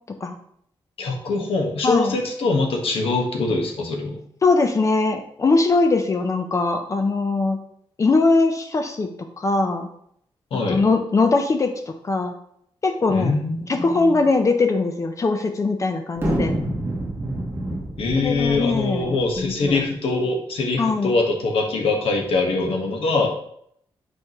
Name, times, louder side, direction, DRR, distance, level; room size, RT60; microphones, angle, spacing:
voice 1, 1.0-4.2 10.5-10.8 13.1-14.2 18.0-23.3, left 3 dB, 85° left, 1 dB, 1.3 m, -23 dB
voice 2, 1.8-2.2 4.4-7.6 8.0-9.1 9.4-9.9 10.7-11.7 12.0-12.3 12.8-13.3 13.7-16.5 18.2-19.8 20.8-21.1, left 3 dB, 35° left, 5 dB, 0.6 m, -21 dB
sound 1, 16.2-19.8, right 1 dB, 25° right, 1.4 m, -28 dB
6.6 x 5.0 x 3.0 m, 0.68 s
wide cardioid pair, 140°, 9 cm